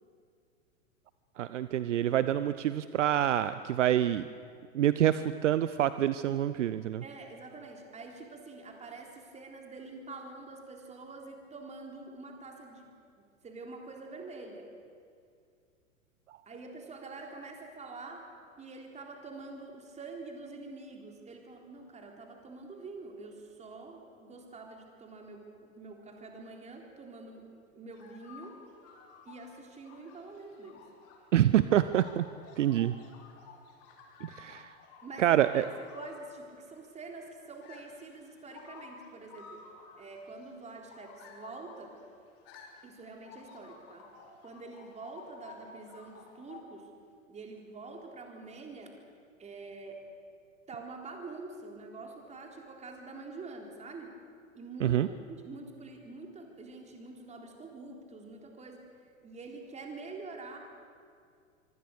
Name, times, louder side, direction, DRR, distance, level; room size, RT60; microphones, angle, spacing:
voice 1, 1.4-4.3 4.7-7.0 31.3-32.2 32.6-32.9 34.2-34.7 35.2-35.6 54.8-55.1, right 11 dB, 60° right, 14 dB, 0.8 m, -26 dB
voice 2, 7.0-12.9 13.2-14.7 16.5-18.2 18.6-28.6 29.2-30.8 32.7-32.8 35.0-39.6 40.0-42.0 42.8-44.1 44.4-46.9 47.3-48.9 49.4-50.0 50.7-54.1 54.5-58.8 59.2-60.6, right 3 dB, 15° right, 2 dB, 4.0 m, -46 dB
sound 1, 27.9-46.6, left 5 dB, 35° left, 4.0 m, -54 dB
25.0 x 25.0 x 6.6 m, 2.2 s
figure-of-eight pair, 100°, 41 cm